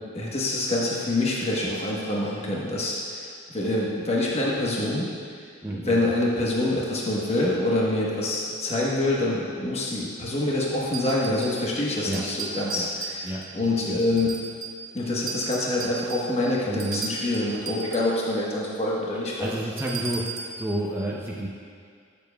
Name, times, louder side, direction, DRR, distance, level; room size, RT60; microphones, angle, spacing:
voice 1, 0.1-3.3 3.5-5.1 5.7-14.3 14.9-19.5, left 2 dB, 30° left, -4 dB, 1.1 m, -26 dB
voice 2, 5.6-6.0 12.1-12.2 12.7-12.9 13.2-13.4 13.8-14.3 16.7-17.1 19.4-20.2 20.6-21.5, right 1 dB, 10° right, -4 dB, 0.6 m, -30 dB
sound 1, 10.9-11.7 12.1-13.6 14.2-14.9 15.3-18.2 19.8-20.6, right 5 dB, 75° right, 0.9 m, -36 dB
13.5 x 7.0 x 2.3 m, 2.2 s
head